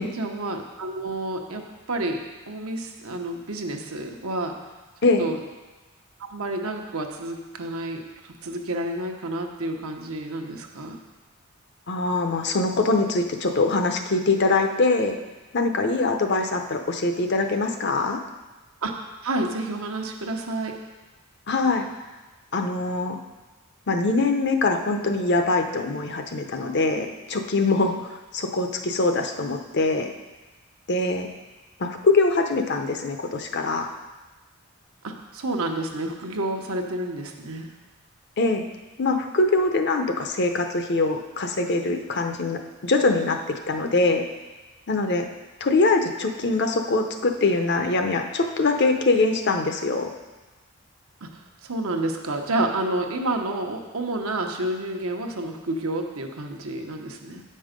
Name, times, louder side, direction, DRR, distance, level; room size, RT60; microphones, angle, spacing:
voice 1, 0.2-4.6 5.2-5.4 6.3-8.0 8.4-11.0 18.8-18.9 19.2-20.8 35.0-37.7 51.2-51.3 51.6-57.4, right 2 dB, 75° right, 3 dB, 0.9 m, -29 dB
voice 2, 11.9-15.1 15.5-18.2 21.5-21.9 22.5-23.2 23.9-30.1 30.9-31.3 31.8-33.9 38.4-38.6 39.0-43.4 43.7-44.3 44.9-45.3 45.6-50.1, left 3 dB, 50° left, 5 dB, 0.7 m, -23 dB
8.9 x 5.5 x 5.1 m, 1.2 s
head